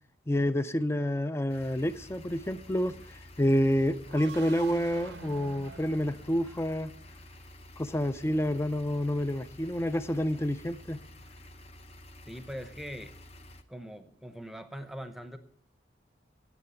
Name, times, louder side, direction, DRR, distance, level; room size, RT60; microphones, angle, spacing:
voice 1, 0.3-2.9 3.4-6.9 7.8-11.0, equal, 15° left, 0.4 m, -28 dB
sound 1, 1.5-13.6, left 1 dB, 35° left, 0.8 m, -51 dB
sound 2, 4.0-7.0, right 4 dB, 65° right, 0.7 m, -47 dB
voice 2, 12.3-13.1 13.7-15.4, equal, ahead, 0.8 m, -42 dB
9.9 x 7.8 x 9.0 m
head